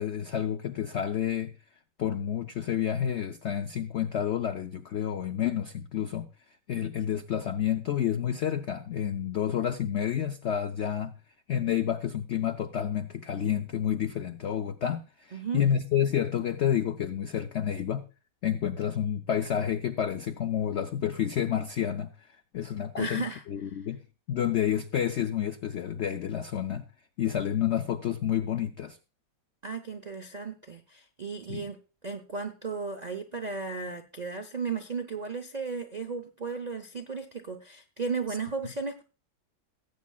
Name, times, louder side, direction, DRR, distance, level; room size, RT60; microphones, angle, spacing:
voice 1, 0.0-1.5 2.0-6.3 6.7-11.1 11.5-18.1 18.4-22.1 22.5-24.0 24.3-26.9 27.2-29.0 31.5-31.7, left 9 dB, 80° left, 8 dB, 0.6 m, -29 dB
voice 2, 15.3-15.7 23.0-23.4 29.6-31.8 32.0-39.0, right 4 dB, 80° right, 5 dB, 0.3 m, -35 dB
17.5 x 8.3 x 2.3 m, 0.33 s
omnidirectional pair, 1.9 m